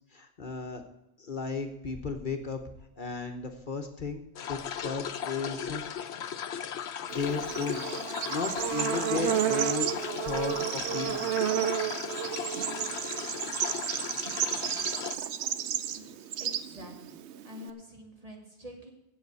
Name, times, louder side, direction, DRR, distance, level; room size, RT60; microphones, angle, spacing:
voice 1, 0.1-0.8 1.2-2.6 3.0-5.8 7.1-7.8 8.3-9.9 10.2-11.2, left 4 dB, 50° left, 5 dB, 1.1 m, -35 dB
sound 1, 4.4-15.2, left 8 dB, 85° left, 1.0 m, -37 dB
Bird / Insect, 7.1-17.7, right 10 dB, 85° right, 1.0 m, -32 dB
voice 2, 15.8-17.2 17.4-18.9, left 1 dB, 35° right, 0 dB, 2.7 m, -47 dB
8.3 x 7.8 x 8.1 m, 0.90 s
omnidirectional pair, 1.1 m